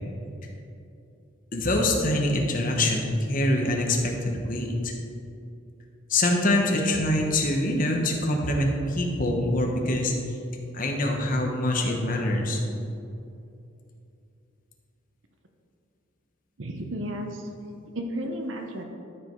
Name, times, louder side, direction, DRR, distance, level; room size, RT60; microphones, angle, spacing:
voice 1, 1.5-4.9 6.1-10.1 10.7-12.6, left 1 dB, 40° left, 1 dB, 1.1 m, -24 dB
voice 2, 16.6-17.5 17.9-18.8, equal, 65° right, 3 dB, 0.8 m, -33 dB
12.5 x 5.2 x 4.6 m, 2.6 s
head